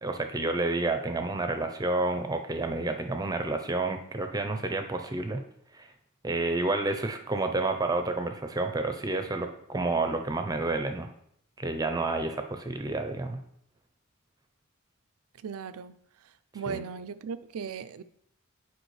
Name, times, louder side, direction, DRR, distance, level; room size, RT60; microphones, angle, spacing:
voice 1, 0.0-5.4 5.7-5.9 6.2-11.1 11.6-13.4 16.7-16.8, right 2 dB, 20° right, 0.6 m, -30 dB
voice 2, 15.4-15.9 16.5-18.0, right 6 dB, 90° right, 0.4 m, -37 dB
9.0 x 4.8 x 3.2 m
head